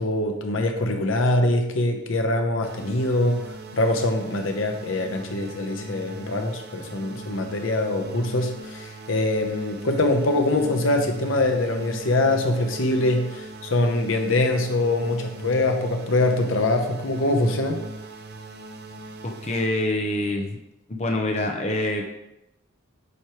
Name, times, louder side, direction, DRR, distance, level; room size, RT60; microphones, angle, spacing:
voice 1, 0.0-17.8, left 2 dB, 70° left, 4 dB, 0.8 m, -23 dB
sound 1, 2.6-19.7, right 2 dB, 55° right, 0.5 m, -39 dB
voice 2, 19.4-20.6 20.9-22.1, left 1 dB, 35° left, 2 dB, 0.6 m, -25 dB
8.2 x 3.0 x 4.6 m, 0.89 s
head